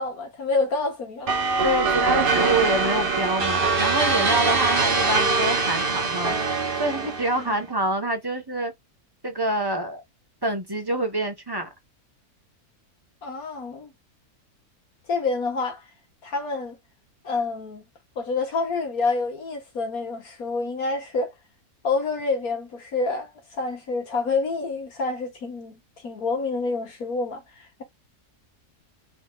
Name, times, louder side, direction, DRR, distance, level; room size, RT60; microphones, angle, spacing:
voice 1, 0.0-1.3 7.4-7.6 13.2-13.9 15.1-15.9 16.2-16.8 17.2-17.8 18.2-21.3 21.8-27.4, left 3 dB, 70° left, 2.2 m, -28 dB
sound 1, 1.3-7.5, right 4 dB, 40° right, 1.1 m, -23 dB
voice 2, 1.6-8.7 9.2-10.0 10.4-11.7, right 1 dB, 15° right, 1.2 m, -26 dB
4.5 x 4.1 x 2.4 m
omnidirectional pair, 1.6 m